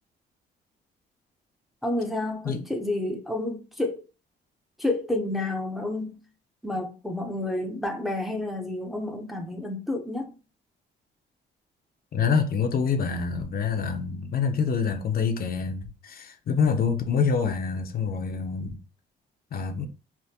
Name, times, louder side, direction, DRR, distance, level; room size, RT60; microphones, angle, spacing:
voice 1, 1.8-4.0 4.8-6.2 6.6-10.3, left 2 dB, ahead, 0.6 m, -30 dB
voice 2, 12.1-18.8 19.5-19.9, left 5 dB, 50° left, 0.6 m, -26 dB
3.4 x 2.1 x 2.7 m
cardioid pair, 90°, 20 cm